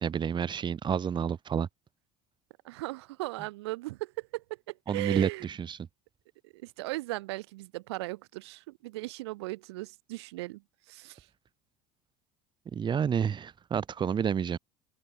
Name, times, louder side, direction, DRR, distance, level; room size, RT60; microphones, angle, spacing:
voice 1, 0.0-1.7 4.9-5.8 12.7-14.6, right 7 dB, 35° right, 1.8 m, -29 dB
voice 2, 2.6-5.5 6.4-10.6 10.9-11.3, right 20 dB, 85° right, 7.4 m, -37 dB
open air
supercardioid pair, 90°, 13 cm